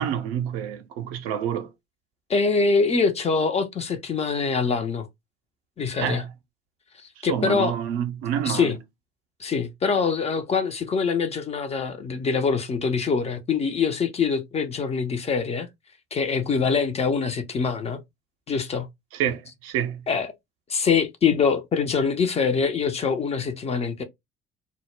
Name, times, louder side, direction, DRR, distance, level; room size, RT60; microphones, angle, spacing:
voice 1, 0.0-1.7 6.0-6.3 7.2-8.8 19.1-20.0, right 9 dB, 50° right, 0.5 m, -28 dB
voice 2, 2.3-5.1 5.8-6.2 7.0-7.7 8.4-8.8 9.4-15.7 16.1-18.0 18.5-18.9 20.1-20.3 20.7-24.0, left 5 dB, 20° left, 0.4 m, -24 dB
2.1 x 2.0 x 3.1 m
figure-of-eight pair, 55°, 29 cm